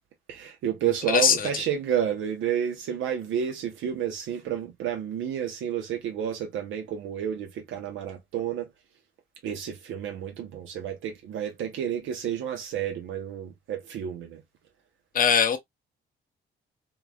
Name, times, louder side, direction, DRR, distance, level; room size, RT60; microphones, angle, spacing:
voice 1, 0.3-8.7 9.4-14.4, right 9 dB, 80° right, 0.7 m, -30 dB
voice 2, 1.1-1.5 15.1-15.6, left 7 dB, 45° left, 0.7 m, -21 dB
3.1 x 2.1 x 2.2 m
cardioid pair, 90°, 20 cm